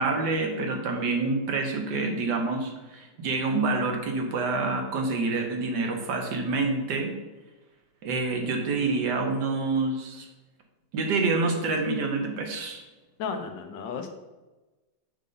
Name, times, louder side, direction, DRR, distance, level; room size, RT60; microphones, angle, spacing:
voice 1, 0.0-7.1 8.0-10.3 10.9-12.8, right 3 dB, 70° right, 3 dB, 1.5 m, -27 dB
voice 2, 13.2-14.1, left 5 dB, 80° left, 6 dB, 1.4 m, -33 dB
6.6 x 5.3 x 3.8 m, 1.1 s
omnidirectional pair, 2.0 m